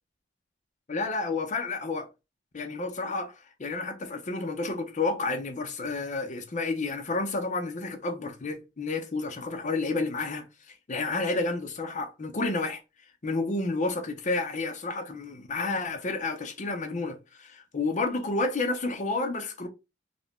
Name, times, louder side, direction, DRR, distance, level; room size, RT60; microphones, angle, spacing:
voice 1, 0.9-2.1 2.5-10.5 10.9-12.8 13.2-19.7, left 3 dB, 40° left, 0.6 m, -30 dB
2.5 x 2.1 x 3.4 m
head